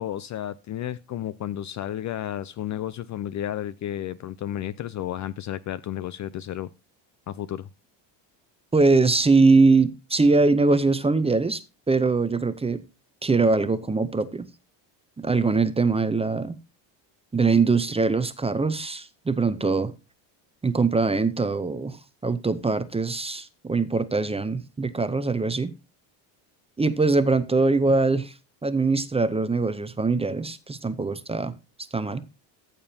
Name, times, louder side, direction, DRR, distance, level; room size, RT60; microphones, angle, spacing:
voice 1, 0.0-6.7 7.3-7.7, left 11 dB, 40° left, 0.4 m, -32 dB
voice 2, 8.7-11.6 11.9-12.8 13.2-14.5 15.2-16.6 17.3-19.9 20.6-22.0 22.2-25.7 26.8-28.3 28.6-31.5 31.9-32.2, right 3 dB, 15° right, 0.6 m, -22 dB
14.0 x 7.0 x 2.7 m
supercardioid pair, 105°, 49 cm